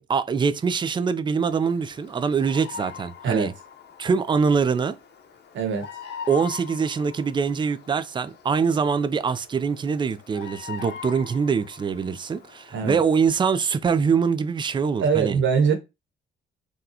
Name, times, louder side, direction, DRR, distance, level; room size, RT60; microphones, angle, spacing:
voice 1, 0.0-3.5 4.0-5.0 6.3-15.4, right 6 dB, 25° right, 0.4 m, -24 dB
Bird vocalization bird call bird song, 1.5-13.3, left 7 dB, 60° left, 0.9 m, -43 dB
voice 2, 5.5-5.9 12.7-13.0 15.0-15.7, right 6 dB, 70° right, 1.0 m, -22 dB
3.8 x 2.3 x 2.8 m
cardioid pair, 90°, 20 cm